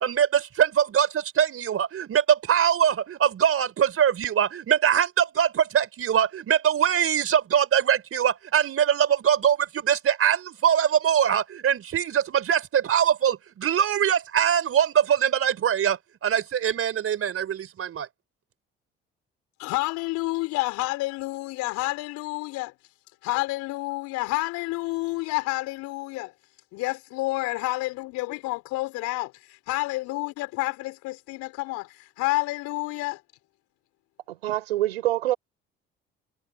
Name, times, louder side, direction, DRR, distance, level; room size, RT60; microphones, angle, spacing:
voice 1, 0.0-18.1, right 9 dB, 50° right, 4.3 m, -23 dB
voice 2, 19.6-22.7 23.2-26.3 26.7-33.2, left 20 dB, 70° left, 4.3 m, -29 dB
voice 3, 34.4-35.4, right 15 dB, 85° right, 4.6 m, -25 dB
hypercardioid pair, 55°, 29 cm